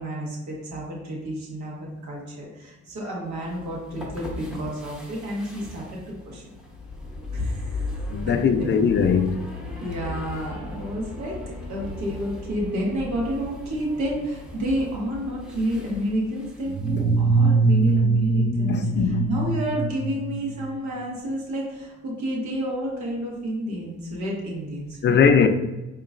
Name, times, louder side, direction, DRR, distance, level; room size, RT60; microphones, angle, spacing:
voice 1, 0.0-6.0 6.2-6.4 7.3-7.9 8.3-8.8 9.8-11.4 11.7-25.2, equal, 70° right, 1.4 m, -30 dB
sound 1, 3.3-17.2, left 2 dB, ahead, 0.9 m, -38 dB
voice 2, 8.1-9.3 18.7-19.3 25.0-25.5, left 6 dB, 40° left, 0.4 m, -20 dB
sound 2, 16.7-20.8, right 3 dB, 25° right, 0.4 m, -22 dB
4.7 x 2.9 x 2.4 m
cardioid pair, 90°, 30 cm